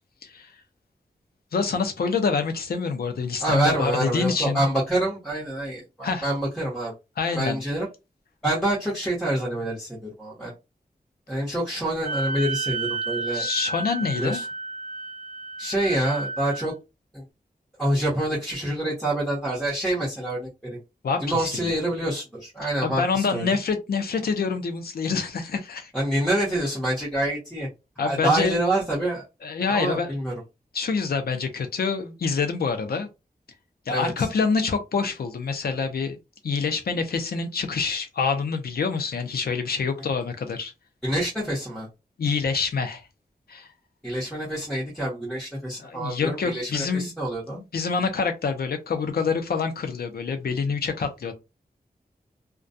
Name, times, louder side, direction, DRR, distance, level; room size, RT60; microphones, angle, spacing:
voice 1, 1.5-4.6 6.0-6.3 7.2-7.6 13.3-14.4 21.0-21.6 22.6-25.9 28.0-28.6 29.4-30.1 30.7-33.1 33.9-36.2 36.4-40.7 42.2-43.0 43.5-43.7 45.8-47.1 47.5-51.3, left 5 dB, 80° left, 0.6 m, -26 dB
voice 2, 3.4-6.9 7.3-7.9 8.4-10.5 11.3-13.5 14.1-14.4 15.6-16.7 17.1-17.2 17.8-20.8 21.2-23.5 25.9-27.7 28.0-29.2 29.7-30.3 33.9-34.3 41.0-41.9 44.0-47.6, right 1 dB, ahead, 1.0 m, -26 dB
Wind instrument woodwind instrument, 12.0-16.7, right 3 dB, 55° right, 0.5 m, -31 dB
2.3 x 2.2 x 2.6 m
wide cardioid pair, 120°, 16 cm